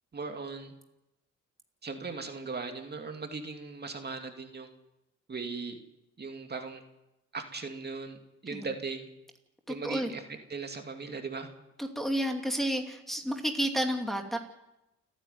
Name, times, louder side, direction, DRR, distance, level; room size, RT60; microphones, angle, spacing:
voice 1, 0.1-0.7 1.8-4.7 5.3-5.8 6.2-6.8 7.3-9.1 9.7-10.2 10.5-11.5, right 4 dB, 35° right, 5 dB, 2.6 m, -38 dB
voice 2, 11.8-14.4, equal, ahead, 3 dB, 2.6 m, -30 dB
29.0 x 10.0 x 9.4 m, 0.92 s
cardioid pair, 90°, 30 cm